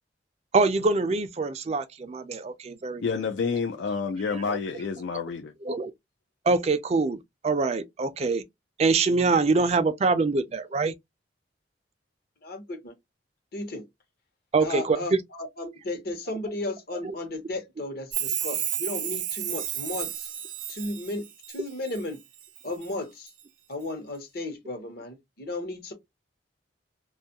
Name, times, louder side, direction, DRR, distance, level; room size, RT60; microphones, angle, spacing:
voice 1, 0.5-3.0 4.5-4.6 5.7-5.9 6.5-8.4 8.8-10.9 14.5-15.2 17.0-17.1, right 3 dB, 35° right, 0.4 m, -24 dB
voice 2, 3.0-5.5, left 5 dB, 75° left, 0.4 m, -29 dB
voice 3, 12.4-12.9 13.5-13.8 14.6-20.3 20.7-22.2 22.6-23.3 23.7-25.9, left 2 dB, 55° left, 0.9 m, -34 dB
Chime, 18.1-22.0 22.4-22.9 23.3-23.4, right 11 dB, 85° right, 0.6 m, -32 dB
2.5 x 2.3 x 2.7 m
head